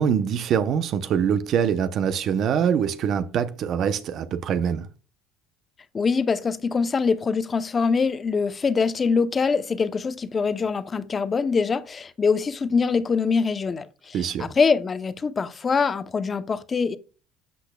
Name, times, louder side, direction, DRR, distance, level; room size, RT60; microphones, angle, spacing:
voice 1, 0.0-4.9 14.1-14.5, right 8 dB, 50° right, 0.8 m, -24 dB
voice 2, 5.9-17.0, left 5 dB, 25° left, 0.8 m, -24 dB
13.0 x 8.0 x 2.3 m
cardioid pair, 120°, 0 cm